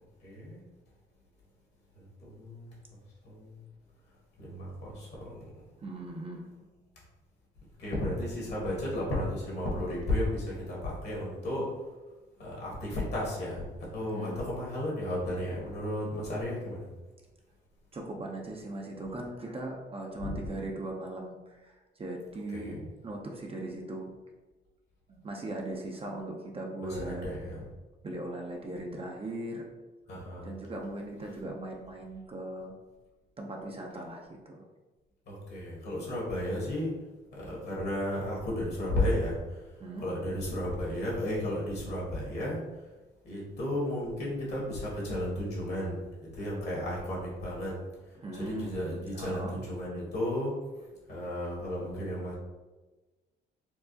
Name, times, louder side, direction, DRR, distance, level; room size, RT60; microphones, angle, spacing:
voice 1, 0.2-0.6 2.0-2.7 3.2-3.6 4.4-5.2 7.8-11.7 12.4-13.6 13.9-16.9 20.2-20.4 22.5-22.8 26.9-27.6 30.1-30.5 35.3-36.9 37.3-39.4 40.0-42.6 43.2-46.0 46.4-47.8 48.3-50.5 51.1-52.3, left 1 dB, 55° left, -5 dB, 1.3 m, -33 dB
voice 2, 5.8-6.5 14.1-14.4 17.9-22.8 23.0-24.1 25.1-27.3 28.0-29.7 30.4-32.7 33.4-34.6 39.8-40.1 48.2-48.8 49.1-49.6, right 2 dB, 30° right, 0 dB, 0.5 m, -39 dB
4.5 x 2.0 x 2.7 m, 1.2 s
cardioid pair, 90°, 20 cm